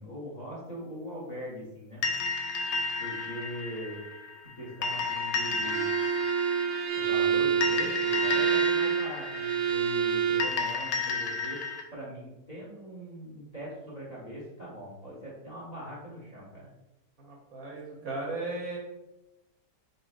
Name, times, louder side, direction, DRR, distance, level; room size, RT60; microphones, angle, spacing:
voice 1, 0.0-2.0 3.0-4.0 4.5-5.9 6.9-11.6 11.9-16.7, equal, 25° left, -6 dB, 1.3 m, -41 dB
sound 1, 2.0-11.8, left 4 dB, 75° left, 1.2 m, -33 dB
Bowed string instrument, 5.6-10.6, right 7 dB, 80° right, 1.3 m, -27 dB
voice 2, 17.2-18.8, right 2 dB, 60° right, -2 dB, 1.3 m, -36 dB
4.7 x 4.0 x 2.5 m, 0.96 s
omnidirectional pair, 1.9 m